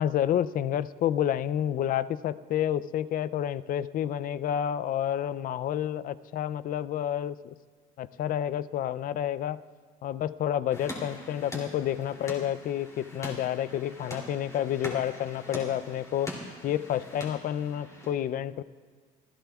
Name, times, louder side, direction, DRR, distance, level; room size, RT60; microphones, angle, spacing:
voice 1, 0.0-7.5 8.0-9.6 10.0-16.4 16.6-18.6, left 10 dB, 55° left, 17 dB, 0.4 m, -29 dB
sound 1, 10.7-18.1, left 1 dB, 20° left, 2.8 m, -42 dB
26.0 x 14.0 x 2.4 m, 1.5 s
cardioid pair, 110°, 17 cm